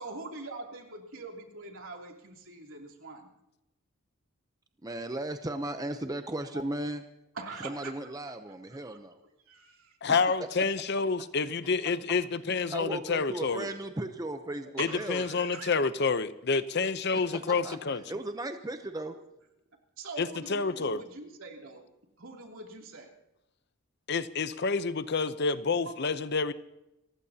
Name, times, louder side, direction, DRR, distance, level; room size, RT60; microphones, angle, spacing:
voice 1, 0.0-3.3 5.0-5.1 6.5-6.6 7.3-7.9 8.3-8.4 8.7-8.8 9.4-10.0 14.0-14.1 14.4-15.7 19.1-19.2 20.0-21.8 22.2-23.1 25.8-25.9, right 3 dB, 75° right, 2.9 m, -43 dB
voice 2, 4.8-7.0 7.6-9.2 10.1-10.5 12.7-15.5 17.1-17.8 18.1-19.2, right 1 dB, 15° right, 0.7 m, -36 dB
voice 3, 10.0-13.7 14.8-18.0 20.2-21.0 24.1-26.5, left 4 dB, 50° left, 0.7 m, -28 dB
28.0 x 15.5 x 2.8 m
head